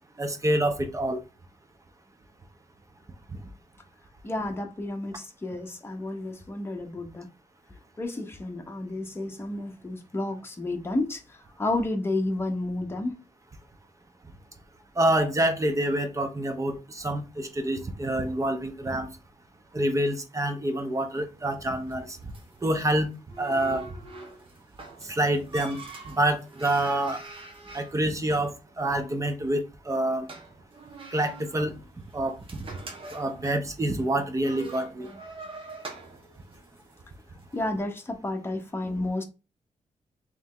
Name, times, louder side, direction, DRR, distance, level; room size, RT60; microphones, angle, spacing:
voice 1, 0.2-1.2 15.0-19.1 19.7-22.2 22.6-23.1 23.4-23.9 25.0-27.2 27.7-28.5 28.8-30.3 31.1-31.8 32.1-32.7 33.1-35.1, right 1 dB, 25° right, 0.8 m, -27 dB
voice 2, 4.2-7.3 8.0-11.2 11.6-13.2 37.5-39.2, left 2 dB, 20° left, 0.9 m, -31 dB
sound 1, 20.3-37.6, right 3 dB, 45° right, 1.2 m, -46 dB
3.4 x 3.1 x 3.8 m
cardioid pair, 105°, 13 cm